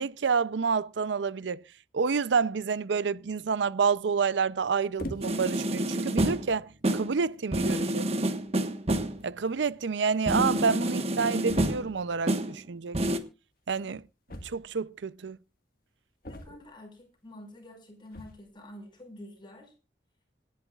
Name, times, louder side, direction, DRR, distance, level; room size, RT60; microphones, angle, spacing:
voice 1, 0.0-1.6 1.9-8.1 9.2-13.0 13.7-14.0 14.4-15.4, right 5 dB, 85° right, 0.5 m, -28 dB
sound 1, 5.0-5.6 6.4-6.5 7.3-7.4 7.7-8.0 9.2-9.3 9.5-9.6 9.8-9.9 11.5-12.0 14.3-15.0 16.2-16.9 18.1-18.5, left 1 dB, 55° left, 1.6 m, -42 dB
sound 2, 5.2-6.6 6.8-7.2 7.5-9.2 10.3-12.0 12.3-12.6 12.9-13.2, right 1 dB, 35° right, 1.3 m, -28 dB
voice 2, 16.2-19.7, left 1 dB, 25° left, 5.2 m, -48 dB
26.5 x 10.0 x 2.4 m
head